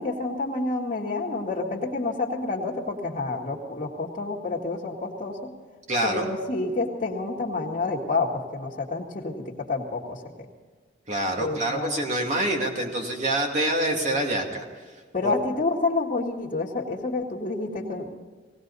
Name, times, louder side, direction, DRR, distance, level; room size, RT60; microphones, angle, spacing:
voice 1, 0.0-5.4 6.0-10.2 11.4-12.1 15.1-18.2, left 3 dB, 40° left, -8 dB, 1.8 m, -28 dB
voice 2, 5.9-6.3 11.1-14.6 15.2-15.3, right 1 dB, 40° right, 1 dB, 2.4 m, -26 dB
18.5 x 18.0 x 4.1 m, 1.5 s
head